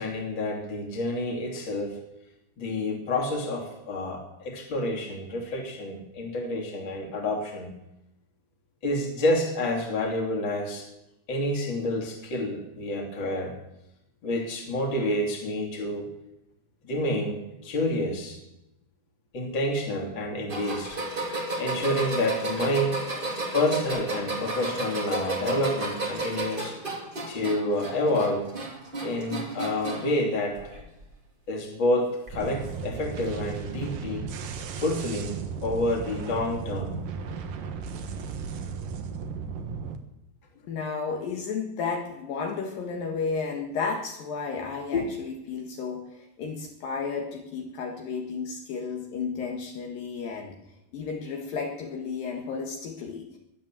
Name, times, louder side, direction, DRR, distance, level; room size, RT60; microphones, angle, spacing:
voice 1, 0.0-2.0 2.6-7.7 8.8-10.9 11.3-13.5 14.2-16.1 16.8-18.4 19.3-21.0 21.6-23.0 23.5-26.7 27.3-28.5 29.0-30.6 31.5-34.2 34.8-37.0 44.9-45.1, left 1 dB, 30° left, 2 dB, 3.4 m, -28 dB
sound 1, 20.5-30.2 30.6-31.1 32.3-32.4 33.5-33.6, right 2 dB, 15° right, 1.8 m, -33 dB
sound 2, 32.3-40.0, right 5 dB, 65° right, 2.8 m, -35 dB
voice 2, 40.7-50.5 50.9-53.4, left 5 dB, 65° left, 1 dB, 3.3 m, -33 dB
22.0 x 8.7 x 7.5 m, 0.87 s
omnidirectional pair, 4.4 m